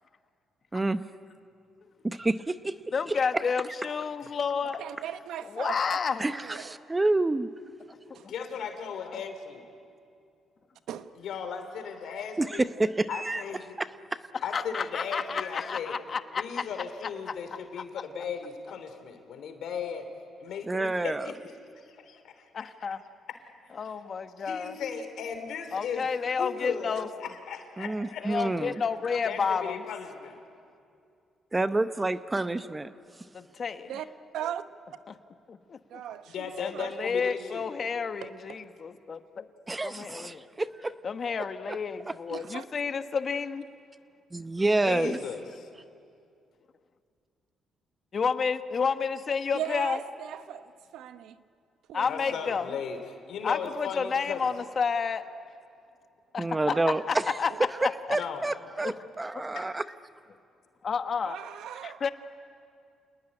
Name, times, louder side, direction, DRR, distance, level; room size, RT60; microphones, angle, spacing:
voice 1, 0.7-1.0 2.0-2.7 3.1-3.4 6.2-7.5 12.4-13.4 13.8-14.2 20.6-21.3 27.8-28.8 31.5-32.9 33.2-33.3 39.7-40.9 41.7-41.8 42.0-42.1 44.3-45.2 56.4-57.4 57.8-59.8, right 2 dB, 20° right, 0.8 m, -28 dB
voice 2, 2.9-4.8 5.5-6.2 14.5-16.7 17.3-17.4 17.8-17.9 22.5-23.0 23.7-24.7 25.7-27.1 28.2-29.8 33.3-33.9 35.5-35.8 36.6-39.4 39.8-40.4 41.0-43.7 48.1-50.0 51.9-52.7 53.4-55.2 56.3-57.5 57.8-57.9 58.8-58.9 60.8-61.4 61.8-62.1, left 5 dB, 45° left, 1.3 m, -30 dB
voice 3, 4.8-5.8 6.3-6.7 8.1-8.3 10.9-11.1 33.9-34.1 34.3-34.6 35.9-36.9 38.2-38.3 42.3-42.6 49.5-51.4 51.9-52.5 56.6-56.8 57.5-57.6 61.2-62.0, right 10 dB, 80° right, 0.9 m, -38 dB
voice 4, 8.3-9.6 11.2-12.6 13.1-13.8 14.4-16.0 16.4-20.1 20.4-21.3 21.7-22.6 23.8-23.9 24.4-26.1 26.4-28.6 29.2-30.4 36.3-37.7 44.8-45.7 52.0-54.4 58.2-58.5 59.6-59.7, left 6 dB, 75° left, 3.3 m, -37 dB
28.0 x 19.5 x 9.9 m
cardioid pair, 90°, 0 cm